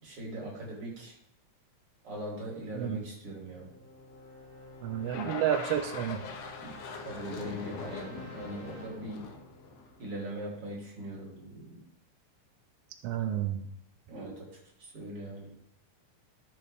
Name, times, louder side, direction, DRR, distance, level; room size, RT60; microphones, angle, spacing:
voice 1, 0.0-1.2 2.0-3.8 6.6-6.7 7.0-9.3 10.0-11.8 14.1-14.5 14.8-15.5, right 1 dB, 45° right, -3 dB, 3.7 m, -40 dB
voice 2, 2.7-3.0 4.8-6.2 13.0-13.7, right 10 dB, 80° right, 7 dB, 1.4 m, -30 dB
sound 1, 3.0-10.8, left 1 dB, 20° left, 2.2 m, -51 dB
sound 2, 5.1-10.4, left 5 dB, 85° left, 2.4 m, -42 dB
13.5 x 7.0 x 3.3 m, 0.75 s
omnidirectional pair, 3.5 m